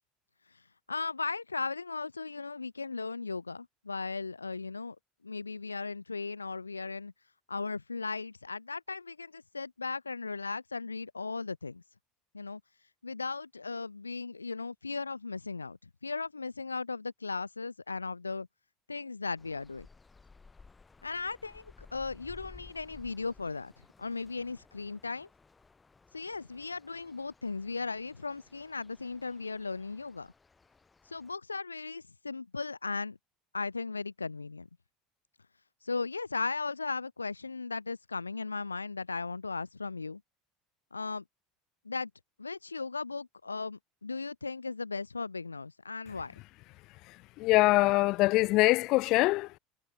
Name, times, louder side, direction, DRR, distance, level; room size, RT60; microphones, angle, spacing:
voice 1, 0.9-5.0 5.2-7.1 7.5-11.8 12.3-12.6 13.0-15.8 16.0-18.5 18.9-19.9 21.0-23.7 24.0-25.3 26.1-30.3 31.1-33.2 33.5-34.7 35.8-40.2 40.9-41.2 41.8-42.1 42.4-46.3, left 4 dB, 85° left, 0.6 m, -37 dB
sound 1, 19.4-31.3, left 4 dB, 20° left, 6.1 m, -57 dB
voice 2, 47.1-49.6, left 21 dB, 55° left, 0.7 m, -24 dB
figure-of-eight pair, 70°, 0 cm